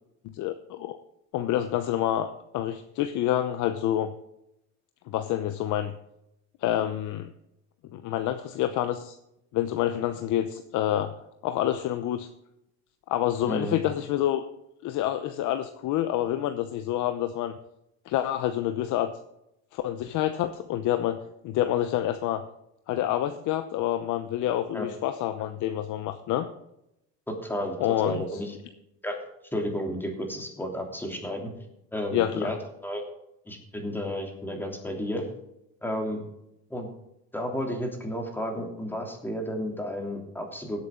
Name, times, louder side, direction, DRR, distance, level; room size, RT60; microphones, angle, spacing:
voice 1, 0.3-0.9 1.3-4.1 5.1-5.9 6.6-7.3 7.9-9.2 9.5-11.1 11.4-12.3 13.1-14.4 14.8-17.5 18.1-19.1 19.7-21.2 21.4-22.4 22.9-26.5 27.8-28.2 32.1-32.5, left 12 dB, 60° left, 9 dB, 0.9 m, -27 dB
voice 2, 13.4-13.8 24.7-24.9 27.3-27.8 28.0-28.5 29.0-29.2 29.5-31.5 31.9-32.6 32.8-33.0 33.5-35.3 35.8-36.2 36.7-36.9 37.3-40.8, equal, 5° left, 1 dB, 3.0 m, -32 dB
18.0 x 8.1 x 3.8 m, 0.83 s
cardioid pair, 120°, 35 cm